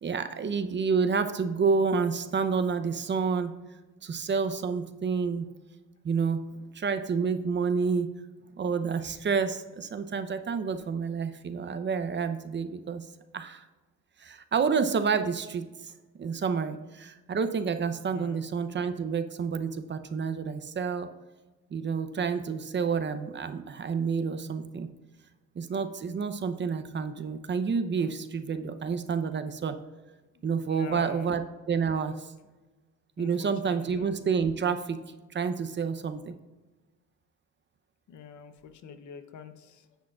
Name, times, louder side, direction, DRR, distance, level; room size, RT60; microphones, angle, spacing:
voice 1, 0.0-3.5 4.0-5.5 6.0-6.4 6.7-8.1 8.6-13.0 13.3-13.6 14.2-15.9 16.2-21.1 21.7-24.9 25.6-29.8 30.4-32.3 33.2-35.0 35.3-36.3, right 5 dB, 40° right, 10 dB, 0.7 m, -29 dB
voice 2, 18.1-18.4 30.7-31.3 33.2-34.1 38.1-38.5 38.8-39.8, left 7 dB, 75° left, 9 dB, 0.8 m, -45 dB
10.0 x 7.4 x 2.4 m, 1.2 s
cardioid pair, 90°, 30 cm